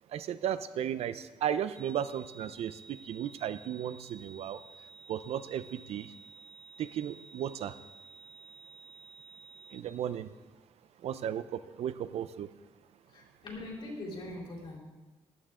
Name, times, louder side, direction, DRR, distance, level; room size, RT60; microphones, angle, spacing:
voice 1, 0.1-4.6 5.1-6.1 6.8-7.7 9.7-10.3 11.0-12.5, right 10 dB, 75° right, 13 dB, 0.6 m, -35 dB
sound 1, 1.7-9.8, right 4 dB, 20° right, 1.7 m, -53 dB
voice 2, 13.1-14.8, left 1 dB, 55° left, -2 dB, 3.6 m, -42 dB
15.0 x 11.5 x 3.7 m, 1.3 s
wide cardioid pair, 155°, 11 cm